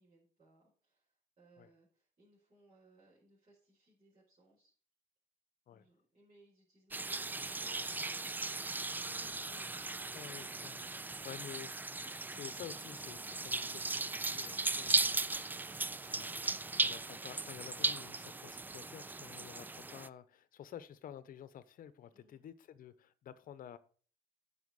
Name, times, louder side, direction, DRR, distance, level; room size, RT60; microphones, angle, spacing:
voice 1, 0.0-4.7 5.7-8.3 22.1-22.4, right 2 dB, 35° right, 5.3 m, -68 dB
sound 1, 6.9-20.1, right 3 dB, 10° right, 0.3 m, -37 dB
sound 2, 7.8-14.5, equal, 25° left, 1.2 m, -68 dB
voice 2, 9.5-9.9 10.1-15.2 16.0-23.8, left 10 dB, 55° left, 1.0 m, -51 dB
Cutlery silverware, 14.5-16.7, right 10 dB, 85° right, 1.0 m, -63 dB
9.4 x 5.8 x 6.4 m
cardioid pair, 110°, 17 cm